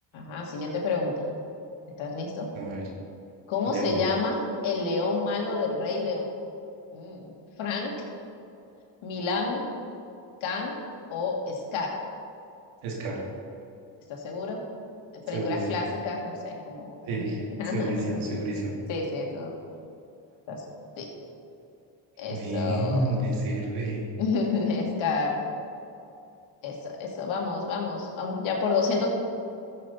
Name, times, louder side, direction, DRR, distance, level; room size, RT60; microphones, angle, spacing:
voice 1, 0.1-1.1 2.0-2.5 3.5-6.3 6.9-7.9 9.0-9.6 10.4-10.8 11.1-12.0 14.1-14.6 15.1-17.2 17.5-18.2 18.9-19.5 20.5-20.6 21.0-21.1 22.2-23.1 24.2-25.4 26.6-29.1, left 4 dB, 75° left, 0 dB, 2.4 m, -29 dB
voice 2, 3.7-4.0 12.8-13.2 15.3-15.8 17.1-18.8 22.3-24.1, right 2 dB, 85° right, -2 dB, 2.6 m, -30 dB
13.5 x 7.7 x 4.3 m, 2.6 s
supercardioid pair, 80°, 48 cm